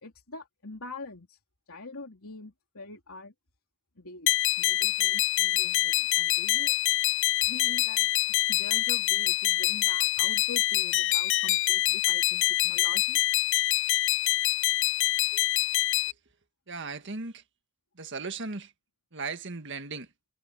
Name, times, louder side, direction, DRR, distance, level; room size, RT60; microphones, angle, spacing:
voice 1, 0.0-1.4 1.7-3.3 4.0-6.8 7.4-13.2, left 3 dB, 75° left, 3.4 m, -44 dB
sound 1, 4.3-16.1, left 15 dB, 60° left, 0.6 m, -25 dB
voice 2, 16.7-17.4 18.0-18.7 19.1-20.1, right 4 dB, 55° right, 1.8 m, -37 dB
head